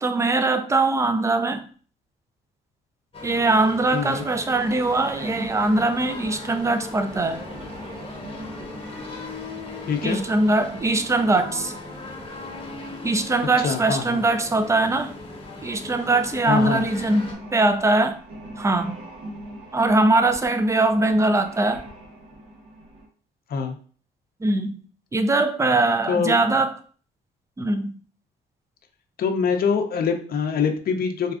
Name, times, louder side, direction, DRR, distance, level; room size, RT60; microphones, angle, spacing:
voice 1, 0.0-1.6 3.2-7.4 10.0-11.8 13.0-15.1 15.6-18.2 18.6-19.0 19.7-21.8 24.4-24.8 25.1-26.7 27.6-28.0, right 2 dB, 15° right, 0.4 m, -21 dB
sound 1, 3.1-17.3, left 2 dB, 30° left, 0.9 m, -38 dB
voice 2, 3.9-4.2 9.9-10.2 13.6-14.2 16.5-16.8 23.5-23.8 26.1-26.4 29.2-31.3, left 6 dB, 50° left, 0.5 m, -24 dB
sound 2, 4.4-23.1, right 1 dB, 90° right, 1.1 m, -42 dB
4.0 x 2.3 x 2.4 m
cardioid pair, 90°, 20 cm